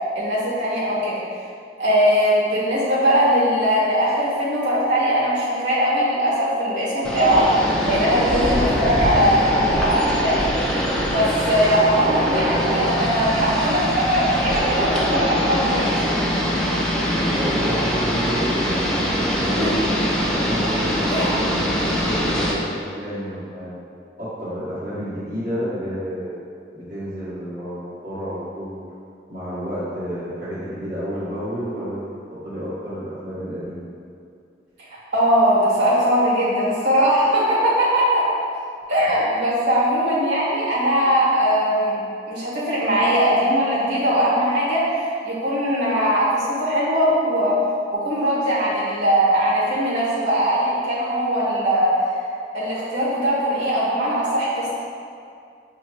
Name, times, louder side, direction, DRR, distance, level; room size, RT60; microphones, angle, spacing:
voice 1, 0.1-1.2 1.8-7.5 7.8-10.4 11.0-16.1 19.6-19.7 21.1-21.3 35.1-38.2 38.9-42.0 42.3-47.6 47.9-52.1 52.5-54.7, equal, 90° right, -7 dB, 1.5 m, -20 dB
sound 1, 7.0-22.5, equal, 5° left, 0.4 m, -23 dB
voice 2, 17.3-19.9 20.4-23.8 24.2-26.4 26.7-28.8 29.3-32.0 32.3-33.8, equal, 45° right, -11 dB, 1.2 m, -30 dB
6.8 x 2.9 x 2.4 m, 2.4 s
head